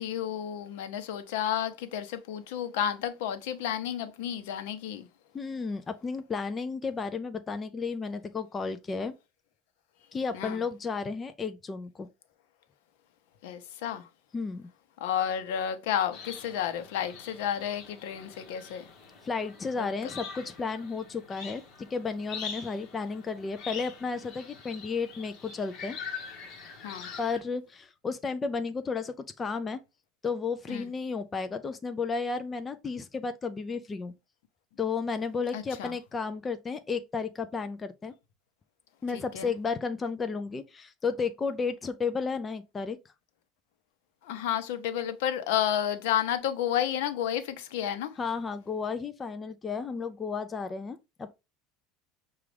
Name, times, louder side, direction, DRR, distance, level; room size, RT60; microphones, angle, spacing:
voice 1, 0.0-5.1 10.3-10.6 13.4-14.1 15.0-18.8 19.8-19.9 26.8-27.1 30.7-30.9 35.5-35.9 39.1-39.5 44.2-48.1, left 9 dB, 80° left, 0.7 m, -31 dB
voice 2, 5.3-9.2 10.1-12.1 14.3-14.7 19.2-26.0 27.2-29.8 30.2-34.1 34.8-38.1 39.0-43.0 48.2-51.3, left 5 dB, 20° left, 0.3 m, -33 dB
sound 1, 16.1-27.4, left 6 dB, 40° left, 1.2 m, -44 dB
6.0 x 2.3 x 3.2 m
cardioid pair, 155°, 0 cm